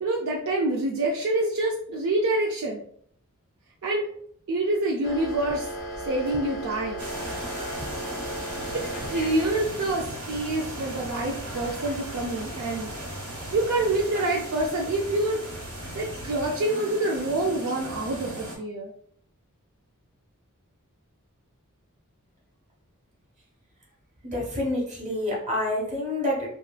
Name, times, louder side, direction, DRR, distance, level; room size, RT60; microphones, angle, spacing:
voice 1, 0.0-2.8 3.8-4.1 4.5-5.7 6.1-7.1 8.7-12.9 13.5-15.4 16.0-18.9, right 2 dB, 65° right, -1 dB, 0.4 m, -26 dB
sound 1, 5.0-10.0, equal, 45° left, 0.5 m, -36 dB
sound 2, 7.0-18.6, right 1 dB, 85° right, 1.1 m, -37 dB
voice 2, 24.3-26.5, left 1 dB, 35° right, -3 dB, 1.1 m, -27 dB
2.9 x 2.8 x 2.2 m, 0.64 s
head